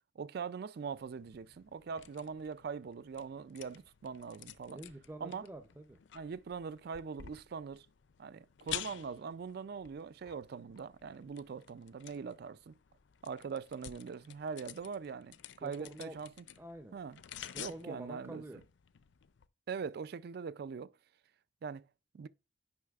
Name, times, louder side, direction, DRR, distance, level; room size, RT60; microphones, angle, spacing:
voice 1, 0.2-4.8 5.2-5.5 6.1-7.9 8.2-12.8 13.2-16.5 16.9-17.2 17.6-18.4 19.7-20.9 21.6-21.8 22.1-22.3, right 5 dB, 55° right, 0.4 m, -42 dB
sound 1, 0.9-19.5, left 11 dB, 75° left, 0.5 m, -51 dB
voice 2, 4.7-6.0 15.6-16.2 16.6-17.0 17.7-18.6, right 1 dB, 15° right, 0.6 m, -47 dB
9.6 x 5.5 x 2.4 m
head